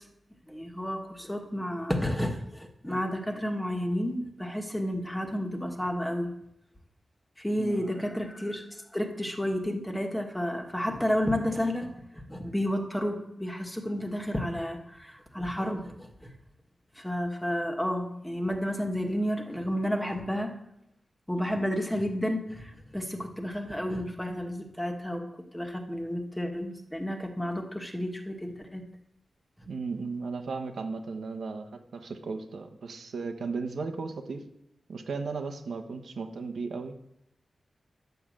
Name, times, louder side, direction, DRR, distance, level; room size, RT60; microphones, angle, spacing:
voice 1, 0.5-6.3 7.4-11.9 12.1-16.3 16.9-20.5 21.3-25.2 25.5-28.8, equal, 5° left, 3 dB, 1.5 m, -31 dB
voice 2, 7.6-8.0 29.7-34.4 34.9-37.0, right 4 dB, 85° right, 6 dB, 1.3 m, -35 dB
10.5 x 6.9 x 7.7 m, 0.83 s
wide cardioid pair, 120°, 0 cm